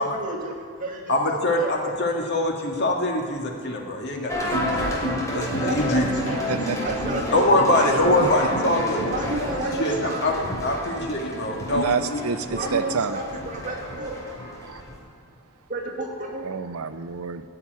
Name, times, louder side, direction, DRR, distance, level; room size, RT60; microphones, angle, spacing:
voice 1, 0.0-1.2 1.5-2.1 5.6-6.5 6.8-7.4 7.9-8.1 9.1-10.4 12.5-14.2 15.7-16.5, right 2 dB, 40° right, -2 dB, 2.4 m, -32 dB
voice 2, 1.1-5.0 5.3-6.1 7.3-9.0 9.3-9.5 9.8-10.3 10.6-12.2, left 1 dB, 55° left, 1 dB, 2.0 m, -23 dB
sound 1, 4.3-15.0, equal, 15° left, 3.2 m, -30 dB
voice 3, 6.5-7.0 10.8-11.1 11.7-13.2 14.6-14.8 16.4-17.4, right 5 dB, 80° right, 11 dB, 0.6 m, -28 dB
15.0 x 5.9 x 9.5 m, 2.4 s
head